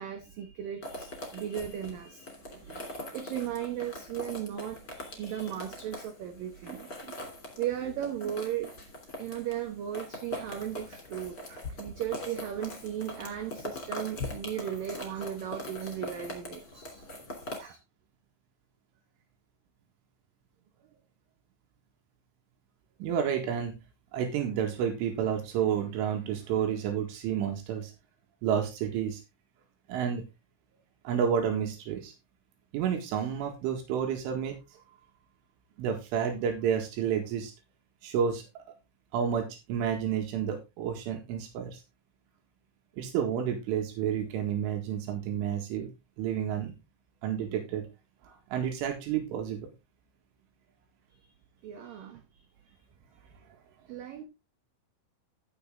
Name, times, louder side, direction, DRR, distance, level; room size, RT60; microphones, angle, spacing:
voice 1, 0.0-2.3 2.6-7.2 7.6-8.7 9.2-17.1 17.4-17.8 51.1-51.2 51.6-52.2 53.9-54.3, right 10 dB, 70° right, 2.3 m, -36 dB
sound 1, 0.8-17.6, left 1 dB, 25° left, 2.9 m, -42 dB
voice 2, 23.0-23.7 24.1-27.9 28.4-29.2 29.9-30.2 31.1-32.1 32.7-34.6 35.8-37.5 38.0-38.4 39.1-41.8 43.0-45.9 46.2-46.7 47.2-47.9 48.3-49.7, right 8 dB, 85° right, 4.3 m, -30 dB
15.0 x 6.5 x 3.7 m
omnidirectional pair, 5.5 m